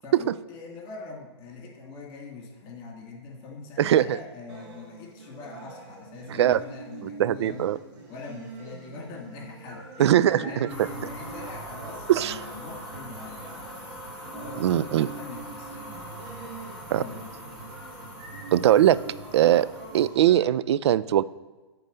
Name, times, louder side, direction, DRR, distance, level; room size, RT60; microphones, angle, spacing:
voice 1, 0.0-7.7 8.1-13.7 14.3-16.2 16.9-17.8, left 4 dB, 35° left, -1 dB, 2.6 m, -42 dB
voice 2, 3.8-4.2 6.3-6.6 7.0-7.8 10.0-10.7 12.1-12.4 14.6-15.1 16.9-17.0 18.5-19.0 19.3-19.7 19.9-21.2, right 11 dB, 70° right, 17 dB, 0.4 m, -21 dB
sound 1, 4.5-20.5, right 4 dB, 50° right, 2.2 m, -45 dB
sound 2, 10.7-20.1, equal, 10° right, 2.6 m, -42 dB
8.2 x 3.9 x 6.8 m, 1.3 s
hypercardioid pair, 130°, 15 cm